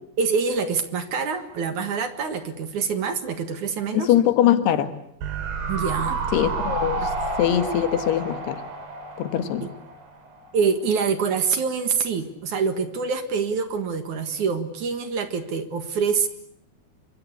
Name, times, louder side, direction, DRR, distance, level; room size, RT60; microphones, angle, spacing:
voice 1, 0.2-4.1 5.7-6.2 9.4-9.5 10.5-16.3, right 5 dB, 55° right, 2.8 m, -25 dB
voice 2, 3.9-5.0 6.3-7.1 7.4-8.6 9.2-9.7, left 11 dB, 85° left, 3.6 m, -22 dB
sound 1, 5.2-10.5 10.7-10.8, right 3 dB, 80° right, 5.5 m, -30 dB
27.5 x 24.0 x 8.3 m
omnidirectional pair, 4.6 m